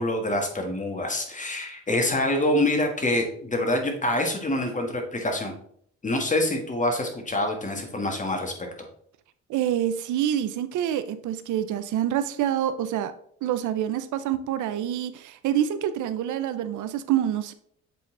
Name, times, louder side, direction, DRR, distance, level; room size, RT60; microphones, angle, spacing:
voice 1, 0.0-5.5 6.0-8.5, left 1 dB, 25° left, 3 dB, 1.5 m, -26 dB
voice 2, 9.5-13.1 13.4-17.5, right 11 dB, 80° right, 12 dB, 0.6 m, -26 dB
7.4 x 3.9 x 3.7 m, 0.63 s
cardioid pair, 90°, 30 cm